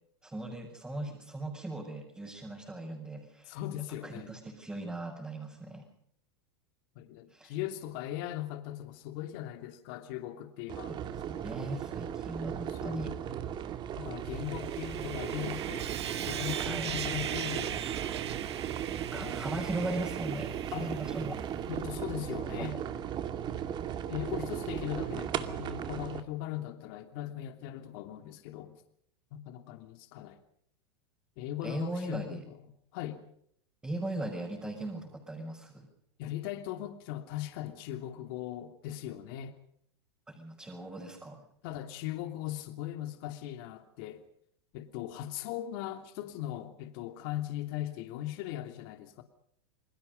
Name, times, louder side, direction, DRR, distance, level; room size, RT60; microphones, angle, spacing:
voice 1, 0.2-3.6 4.0-5.9 7.3-7.5 10.9-13.1 16.6-16.9 18.9-21.4 22.4-22.8 31.6-32.4 33.8-35.9 40.3-41.4, right 2 dB, 10° right, 6.1 m, -38 dB
voice 2, 3.5-4.3 7.0-10.9 12.7-13.2 14.0-15.9 16.3-17.8 19.1-19.4 20.7-20.9 21.7-22.8 24.1-28.8 29.3-30.4 31.4-33.2 36.2-39.5 41.6-44.2 44.7-49.2, left 12 dB, 55° left, 2.8 m, -39 dB
sound 1, 10.7-26.2, right 9 dB, 35° right, 2.3 m, -37 dB
Sawing, 14.3-21.7, right 10 dB, 85° right, 2.1 m, -40 dB
29.0 x 20.5 x 5.3 m
hypercardioid pair, 120°, 14 cm